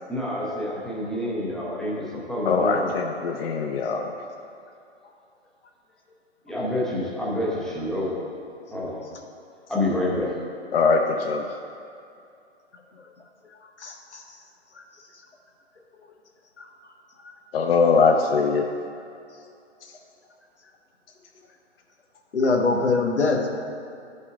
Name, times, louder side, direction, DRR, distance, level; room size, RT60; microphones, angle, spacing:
voice 1, 0.1-2.9 6.5-8.2 8.7-9.0 9.7-10.3, left 1 dB, ahead, -6 dB, 0.4 m, -28 dB
voice 2, 2.5-4.1 10.7-11.5 17.5-18.7, left 4 dB, 60° left, 3 dB, 0.6 m, -21 dB
voice 3, 13.8-14.2 16.6-16.7 22.3-23.5, left 3 dB, 85° left, 2 dB, 1.1 m, -23 dB
12.0 x 5.4 x 2.5 m, 2.5 s
figure-of-eight pair, 125°, 33 cm